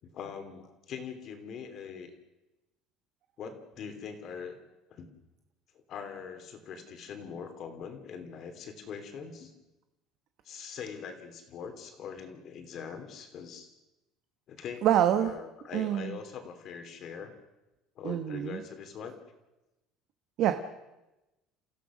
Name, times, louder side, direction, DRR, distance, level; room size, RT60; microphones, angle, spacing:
voice 1, 0.0-2.1 3.4-4.6 4.9-5.1 5.7-9.5 10.4-13.7 14.5-14.9 15.1-17.3 17.9-19.2, left 6 dB, 40° left, 7 dB, 3.0 m, -42 dB
voice 2, 14.8-15.3 15.7-16.2 18.0-18.6 20.4-20.5, right 11 dB, 50° right, 8 dB, 1.2 m, -26 dB
30.0 x 15.5 x 6.3 m, 1.0 s
cardioid pair, 165°, 0 cm